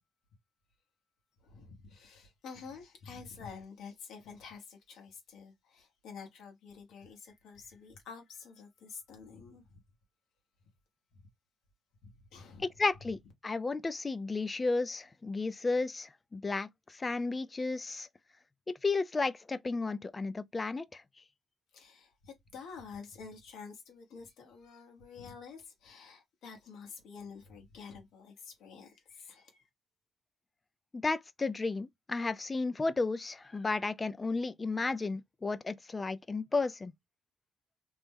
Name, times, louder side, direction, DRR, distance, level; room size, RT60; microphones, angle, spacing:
voice 1, 1.4-9.6 12.0-12.7 21.7-29.7, left 5 dB, 80° left, 1.1 m, -49 dB
voice 2, 12.8-18.1 18.7-21.0 30.9-36.9, left 3 dB, 25° left, 0.3 m, -33 dB
2.9 x 2.1 x 3.5 m
cardioid pair, 90°, 0 cm